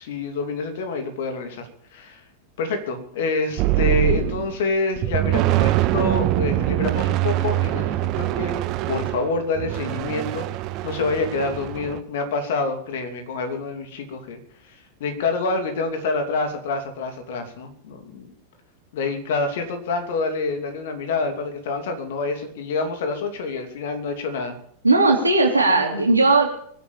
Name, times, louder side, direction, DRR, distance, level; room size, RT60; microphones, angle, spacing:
voice 1, 0.0-2.2 2.6-10.5 10.8-18.3 18.9-24.5, left 3 dB, 55° left, 7 dB, 3.0 m, -27 dB
sound 1, 3.6-4.6 5.0-12.0, right 15 dB, 40° right, 1.1 m, -23 dB
voice 2, 24.8-26.5, right 3 dB, 80° right, 1 dB, 3.7 m, -17 dB
22.5 x 8.5 x 7.3 m, 0.65 s
figure-of-eight pair, 90°, 0 cm